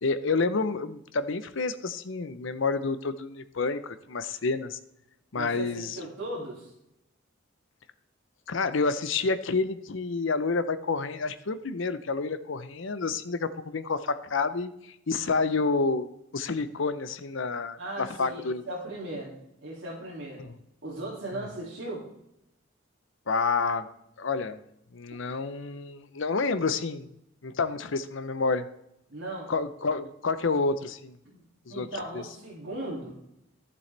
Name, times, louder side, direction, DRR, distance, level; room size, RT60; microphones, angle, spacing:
voice 1, 0.0-4.8 5.3-6.0 8.5-14.7 15.1-16.1 16.3-18.6 20.4-20.6 21.3-21.4 23.3-23.9 24.2-24.6 24.9-27.1 27.4-28.7 29.5-31.2 31.7-31.9 32.1-32.2, left 4 dB, 70° left, 12 dB, 0.7 m, -29 dB
voice 2, 5.3-6.7 17.8-20.4 20.8-22.0 29.1-29.5 31.3-31.4 31.7-33.2, right 1 dB, 70° right, -7 dB, 2.6 m, -37 dB
12.5 x 7.0 x 3.3 m, 0.81 s
head